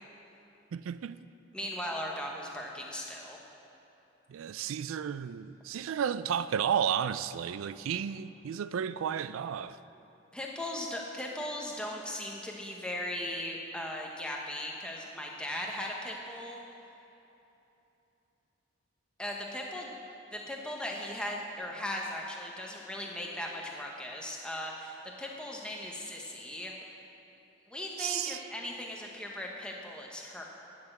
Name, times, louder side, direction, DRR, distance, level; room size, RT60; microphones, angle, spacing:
voice 1, 0.7-1.2 4.3-9.8 28.0-28.4, right 8 dB, 90° right, 0.3 m, -32 dB
voice 2, 1.5-3.4 10.3-16.6 19.2-19.9 20.3-26.7 27.7-30.4, left 1 dB, 5° left, 1.0 m, -38 dB
10.5 x 6.0 x 7.6 m
head